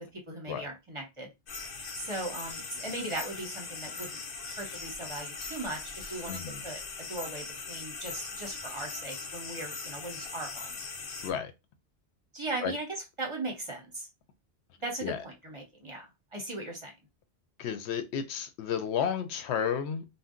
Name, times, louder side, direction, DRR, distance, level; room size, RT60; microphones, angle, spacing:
voice 1, 0.3-1.3 2.0-4.2 4.6-10.8 12.3-14.1 14.8-16.1 16.3-16.9, right 2 dB, 30° right, 0.8 m, -38 dB
sound 1, 1.5-11.3, left 4 dB, 60° left, 0.8 m, -40 dB
voice 2, 6.3-6.6 11.2-11.5 12.6-12.7 15.0-15.2 17.6-20.1, left 8 dB, 90° left, 0.9 m, -32 dB
2.6 x 2.1 x 3.6 m
omnidirectional pair, 1.1 m